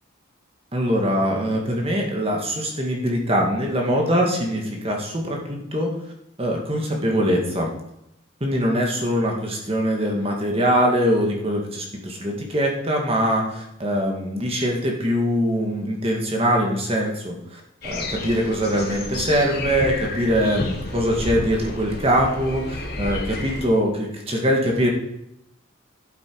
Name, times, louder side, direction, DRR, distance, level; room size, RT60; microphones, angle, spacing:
voice 1, 0.7-5.9 6.4-7.7 8.4-24.9, equal, 30° right, 0 dB, 1.8 m, -23 dB
sound 1, 17.8-23.6, left 1 dB, 50° left, 2.9 m, -31 dB
11.5 x 8.5 x 4.6 m, 0.81 s
head